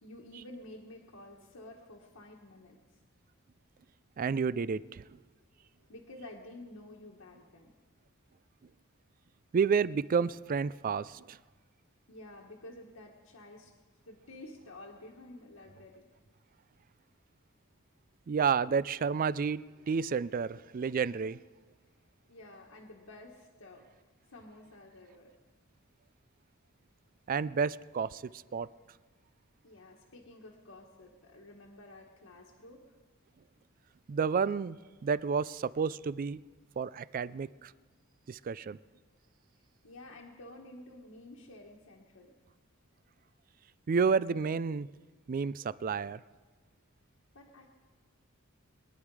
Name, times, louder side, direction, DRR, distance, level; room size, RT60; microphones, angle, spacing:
voice 1, 0.0-3.0 5.9-7.7 12.1-13.7 14.1-16.1 22.3-25.3 29.6-32.9 39.8-42.3 47.3-47.7, left 1 dB, 70° left, -2 dB, 1.5 m, -51 dB
voice 2, 4.2-5.0 9.5-11.4 18.3-19.6 19.9-21.4 27.3-28.2 28.5-28.7 34.1-34.8 35.0-36.4 36.8-37.7 38.3-38.8 43.9-44.9 45.3-46.2, right 5 dB, 40° right, 19 dB, 0.3 m, -30 dB
23.0 x 10.5 x 4.8 m, 1.4 s
head